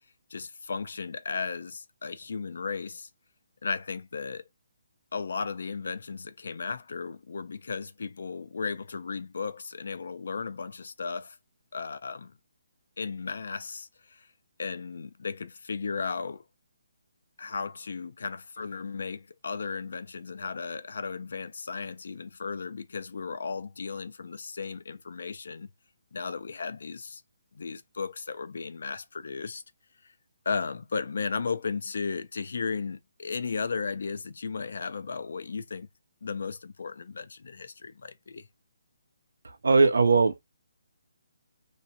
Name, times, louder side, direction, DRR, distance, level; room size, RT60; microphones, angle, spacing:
voice 1, 0.3-3.1 3.6-4.4 5.1-11.4 11.7-12.4 13.0-14.3 14.6-16.4 17.4-25.7 26.1-27.2 27.5-29.6 30.5-35.9 36.2-38.5, left 5 dB, 70° left, 0.4 m, -35 dB
voice 2, 39.6-40.4, right 4 dB, 85° right, 0.5 m, -20 dB
2.6 x 2.2 x 2.7 m
hypercardioid pair, 160°, 0 cm